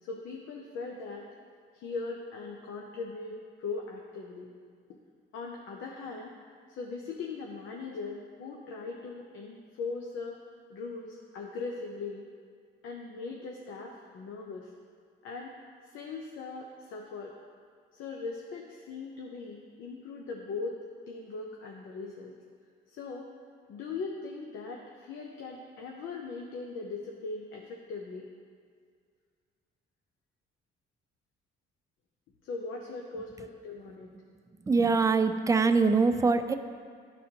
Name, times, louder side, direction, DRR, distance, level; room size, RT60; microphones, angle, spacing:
voice 1, 0.0-1.3 1.7-4.5 5.3-6.4 6.7-10.4 10.7-12.2 12.8-14.7 15.2-15.5 15.9-17.3 17.9-20.8 21.1-22.4 22.9-23.3 23.7-28.3 32.4-34.1, left 4 dB, 80° left, 0 dB, 0.7 m, -40 dB
voice 2, 34.7-36.5, right 4 dB, 15° right, 9 dB, 0.4 m, -23 dB
12.5 x 4.2 x 2.8 m, 2.1 s
cardioid pair, 90°, 20 cm